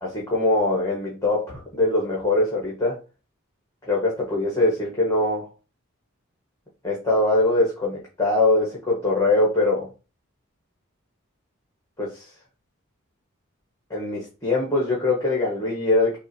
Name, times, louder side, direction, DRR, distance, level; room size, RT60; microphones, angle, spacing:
voice 1, 0.0-3.0 3.8-5.5 6.8-9.9 12.0-12.2 13.9-16.2, left 2 dB, 15° left, -4 dB, 1.3 m, -22 dB
6.1 x 2.6 x 2.7 m, 0.32 s
head